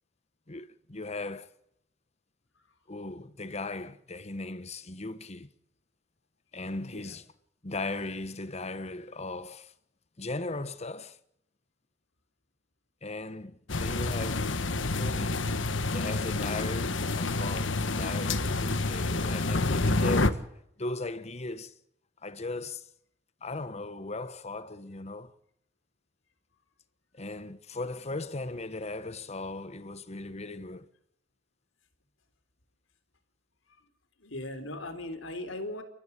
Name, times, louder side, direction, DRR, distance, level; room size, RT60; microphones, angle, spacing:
voice 1, 0.5-1.5 2.9-5.5 6.5-7.2 7.6-9.7 10.2-11.2 13.0-14.6 14.9-15.5 15.9-20.4 20.8-21.7 22.2-22.8 23.4-25.3 27.1-30.9, left 2 dB, 35° left, 1.2 m, -37 dB
sound 1, 13.7-20.3, left 2 dB, 75° left, 1.4 m, -28 dB
voice 2, 34.2-35.8, left 1 dB, 90° left, 3.8 m, -38 dB
29.5 x 14.0 x 8.2 m
head